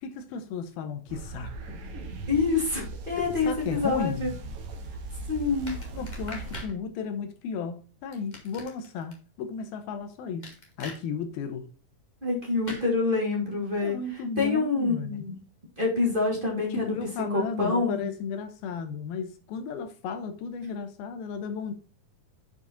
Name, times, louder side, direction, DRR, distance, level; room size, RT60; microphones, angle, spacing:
voice 1, 0.0-1.9 3.2-4.3 5.9-11.7 13.8-15.4 16.7-21.7, left 5 dB, 80° left, 2.7 m, -34 dB
sound 1, 1.1-6.6, right 3 dB, 80° right, 1.3 m, -39 dB
voice 2, 2.3-4.3 5.3-5.8 12.2-14.0 14.4-15.4 15.8-16.9 17.3-18.1, left 3 dB, 15° right, 2.1 m, -26 dB
sound 2, 5.7-6.7 8.1-9.1 10.4-11.0 12.7-12.9, left 2 dB, 35° left, 0.7 m, -41 dB
8.0 x 5.0 x 4.2 m
omnidirectional pair, 4.4 m